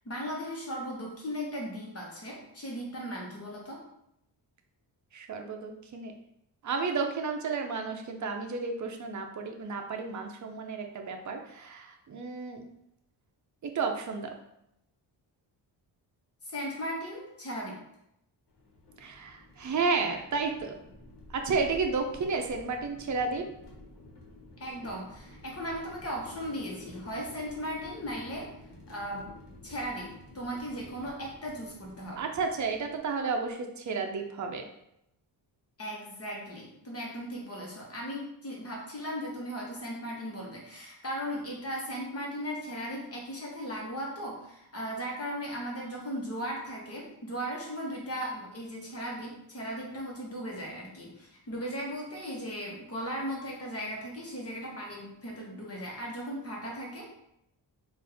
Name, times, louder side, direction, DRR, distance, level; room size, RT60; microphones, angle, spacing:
voice 1, 0.0-3.8 16.4-17.8 24.6-28.5 28.9-29.3 29.6-32.2 35.8-57.1, equal, 35° left, -2 dB, 1.3 m, -37 dB
voice 2, 5.1-6.1 6.6-12.6 13.6-14.3 19.0-20.7 21.3-23.4 32.2-34.6, right 4 dB, 45° right, 4 dB, 0.6 m, -32 dB
sound 1, 18.5-33.5, left 1 dB, 70° left, 1.3 m, -51 dB
4.2 x 2.6 x 3.4 m, 0.79 s
wide cardioid pair, 110°, 43 cm